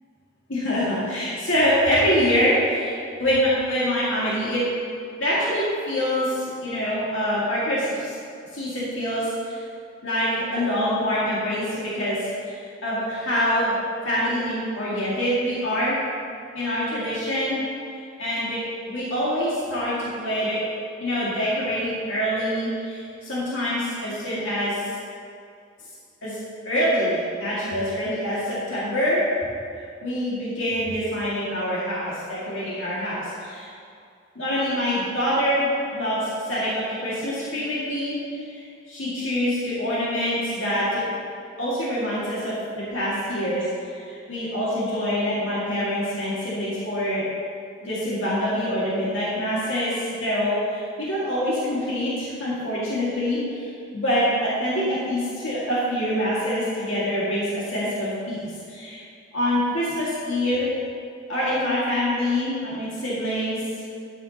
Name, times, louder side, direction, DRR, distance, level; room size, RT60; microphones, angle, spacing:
voice 1, 0.5-4.6 5.2-8.2 8.5-9.6 10.0-13.7 14.0-16.0 16.5-17.6 18.2-18.6 18.9-20.6 21.0-24.8 26.2-26.4 26.7-29.2 30.0-33.7 34.4-38.2 38.5-41.0 41.6-43.6 43.9-47.2 47.8-58.4 58.7-59.0 59.3-60.7 61.3-63.6, equal, 70° left, -8 dB, 2.2 m, -25 dB
12.0 x 8.3 x 2.9 m, 2.4 s
head